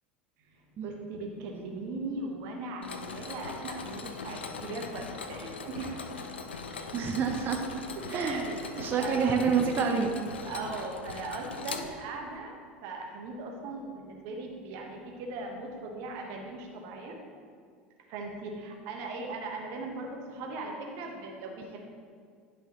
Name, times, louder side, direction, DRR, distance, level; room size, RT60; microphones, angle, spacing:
voice 1, 0.5-6.1 8.1-9.3 10.5-12.5 12.8-17.2 18.1-21.8, right 3 dB, 55° right, 1 dB, 1.3 m, -39 dB
Mechanisms, 2.8-12.4, left 4 dB, 80° left, 0.5 m, -40 dB
voice 2, 6.9-7.7 8.1-8.5 8.8-10.1, right 6 dB, 35° right, 4 dB, 0.7 m, -27 dB
10.5 x 5.8 x 3.0 m, 2.1 s
figure-of-eight pair, 75°, 6 cm